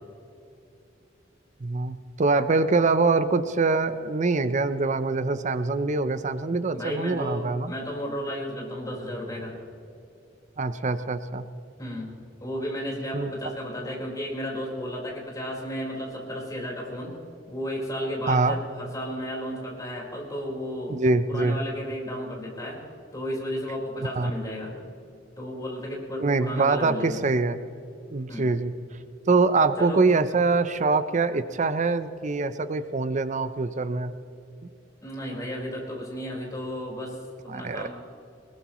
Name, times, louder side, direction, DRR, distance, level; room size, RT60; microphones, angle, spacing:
voice 1, 1.6-7.7 10.6-11.5 13.1-13.3 18.3-18.6 20.9-21.6 24.2-24.3 26.2-27.6 28.1-28.7 29.3-34.1 37.5-37.9, right 3 dB, 40° right, 12 dB, 0.6 m, -24 dB
voice 2, 6.7-9.6 11.8-17.2 17.5-21.0 21.3-22.8 23.1-24.7 25.4-27.2 28.3-28.6 29.8-30.1 35.0-37.9, equal, 20° left, -3 dB, 4.5 m, -33 dB
21.0 x 20.0 x 3.1 m, 2.5 s
head